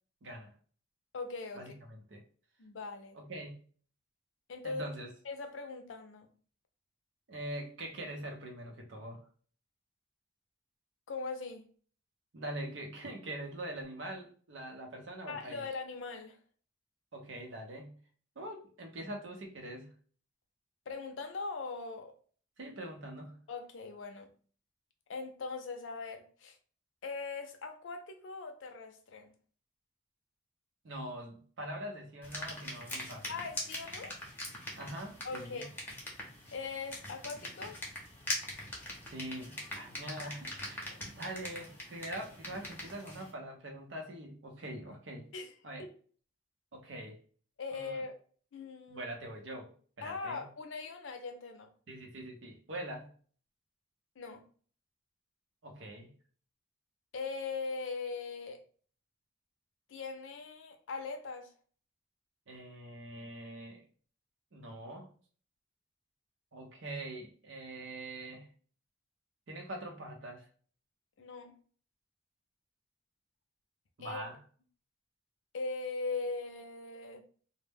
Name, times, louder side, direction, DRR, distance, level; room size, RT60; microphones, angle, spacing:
voice 1, 0.2-0.5 1.5-2.2 3.1-3.6 4.6-5.1 7.3-9.2 12.3-15.6 17.1-17.9 18.4-19.9 22.6-23.4 30.8-33.3 34.8-35.6 39.0-45.3 45.6-45.8 46.7-47.2 47.7-48.0 48.9-49.7 50.0-50.4 51.9-53.1 55.6-56.1 62.5-63.8 64.5-65.1 66.5-68.5 69.5-70.5 74.0-74.4, right 1 dB, 70° right, 0.7 m, -43 dB
voice 2, 1.1-1.7 2.6-3.2 4.5-4.9 5.2-6.3 11.1-11.6 15.3-16.4 20.9-22.1 23.5-24.3 25.1-26.6 27.0-29.3 33.3-34.1 35.2-35.7 36.5-37.8 40.9-41.0 45.3-45.5 45.8-45.9 47.6-48.2 48.5-49.0 50.0-51.7 54.2-54.4 57.1-58.6 59.9-61.5 71.2-71.5 74.0-74.2 75.5-77.2, left 4 dB, 75° left, 0.5 m, -40 dB
sound 1, 32.2-43.3, left 1 dB, 10° left, 0.6 m, -42 dB
2.1 x 2.1 x 3.3 m
head